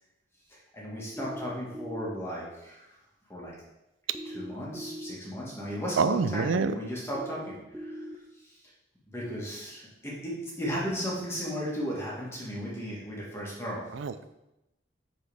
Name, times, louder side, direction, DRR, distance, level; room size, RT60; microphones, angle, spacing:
voice 1, 0.5-2.9 3.3-3.5 4.2-8.6 9.1-13.8, equal, 15° left, -5 dB, 1.7 m, -35 dB
sound 1, 1.2-2.1 4.1-5.1 7.1-8.1, equal, 10° right, 0.4 m, -40 dB
voice 2, 6.0-6.7 13.9-14.3, right 5 dB, 80° right, 12 dB, 0.4 m, -26 dB
9.2 x 4.1 x 3.5 m, 0.92 s
head